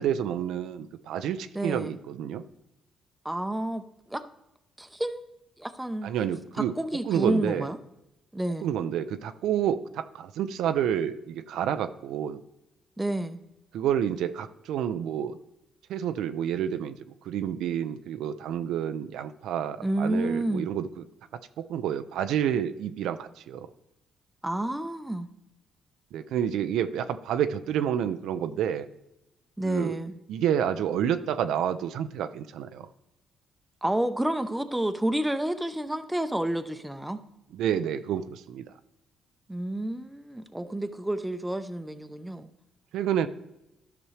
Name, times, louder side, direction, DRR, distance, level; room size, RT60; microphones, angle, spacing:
voice 1, 0.0-2.4 6.0-6.7 7.1-7.7 8.6-12.4 13.7-15.4 15.9-17.0 17.2-20.9 21.6-23.7 26.1-28.9 29.6-30.0 30.3-32.9 37.5-38.6 42.9-43.3, right 9 dB, 85° right, 10 dB, 0.5 m, -29 dB
voice 2, 1.5-1.9 3.2-3.8 4.1-4.2 4.8-5.2 5.6-6.1 6.8-7.8 8.3-8.7 13.0-13.4 19.8-20.6 24.4-25.3 29.6-30.1 33.8-37.2 39.5-42.5, right 1 dB, 5° right, 9 dB, 0.7 m, -29 dB
12.5 x 6.0 x 3.3 m, 0.91 s
cardioid pair, 90°, 0 cm